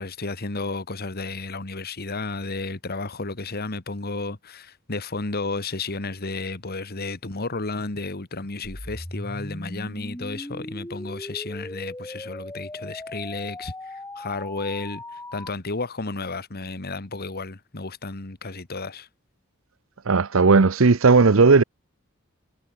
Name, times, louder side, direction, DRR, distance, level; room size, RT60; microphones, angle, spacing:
voice 1, 0.0-19.1, left 3 dB, 50° left, 1.7 m, -32 dB
sound 1, 8.6-15.5, left 1 dB, 15° left, 4.6 m, -38 dB
voice 2, 20.1-21.6, right 4 dB, 70° right, 0.8 m, -16 dB
head